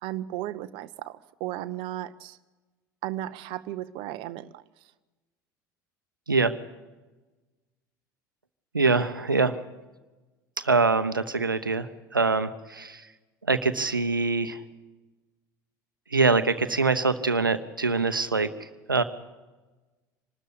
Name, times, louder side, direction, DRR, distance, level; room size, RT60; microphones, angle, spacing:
voice 1, 0.0-2.4 3.0-4.6, right 14 dB, 55° right, 13 dB, 0.7 m, -35 dB
voice 2, 8.7-9.6 10.6-13.0 13.5-14.6 16.1-18.5 18.9-19.0, right 4 dB, 90° right, 12 dB, 0.8 m, -24 dB
25.5 x 13.0 x 8.5 m, 1.2 s
figure-of-eight pair, 70°, 11 cm